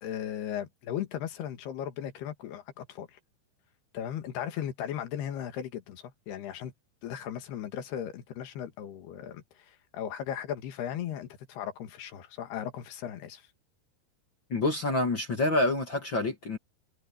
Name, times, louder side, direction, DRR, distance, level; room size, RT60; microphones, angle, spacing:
voice 1, 0.0-3.2 3.9-6.7 7.0-13.4, left 10 dB, 65° left, 3.6 m, -37 dB
voice 2, 14.5-16.6, left 2 dB, 45° left, 1.5 m, -27 dB
omnidirectional pair, 5.5 m